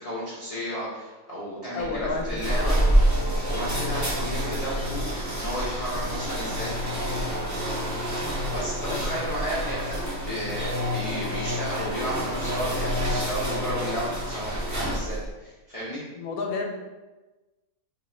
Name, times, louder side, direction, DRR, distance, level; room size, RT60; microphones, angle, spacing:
voice 1, 0.0-2.8 3.5-6.7 8.3-16.0, equal, 35° left, -8 dB, 0.6 m, -33 dB
voice 2, 1.7-2.8 3.7-4.0 8.1-8.4 8.9-9.3 16.1-16.6, left 4 dB, 75° left, 2 dB, 1.0 m, -32 dB
sound 1, 1.8-15.3, equal, 25° right, 0.4 m, -27 dB
3.0 x 2.3 x 4.1 m, 1.2 s
omnidirectional pair, 1.6 m